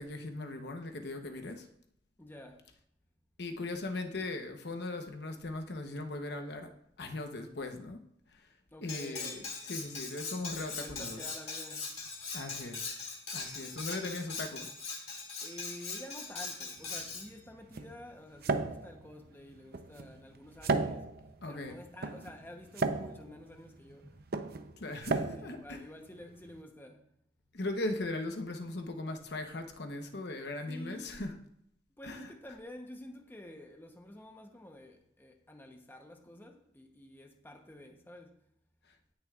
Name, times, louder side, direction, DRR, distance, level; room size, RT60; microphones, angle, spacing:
voice 1, 0.0-1.7 3.4-6.7 7.0-8.0 8.3-8.5 8.8-11.2 12.3-14.7 21.4-21.8 24.8-25.8 27.5-31.3 32.0-32.3, left 2 dB, 65° left, 0.9 m, -39 dB
voice 2, 2.2-2.7 8.7-9.5 10.5-11.9 12.2-12.4 15.4-21.1 21.5-24.2 25.1-27.0 30.6-31.3 32.0-38.4, left 1 dB, 10° left, 0.9 m, -50 dB
Cutlery silverware, 8.9-17.3, left 4 dB, 35° left, 2.4 m, -41 dB
sound 1, 16.8-26.6, right 3 dB, 60° right, 0.6 m, -36 dB
17.5 x 6.6 x 2.4 m
head